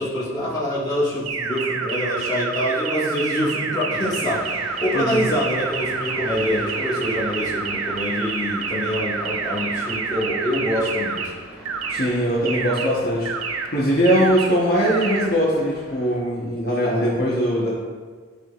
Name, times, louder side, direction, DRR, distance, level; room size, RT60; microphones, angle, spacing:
voice 1, 0.0-11.3, left 1 dB, 20° left, -8 dB, 1.8 m, -25 dB
sound 1, 1.3-11.3 11.7-12.1 12.5-12.9 13.3-13.7 14.1-14.5 14.9-15.3, right 5 dB, 85° right, 0.7 m, -28 dB
sound 2, 3.9-16.2, equal, 5° right, 2.2 m, -41 dB
voice 2, 11.9-13.3 13.7-17.7, equal, 45° left, -6 dB, 1.2 m, -21 dB
12.0 x 5.0 x 2.5 m, 1.5 s
head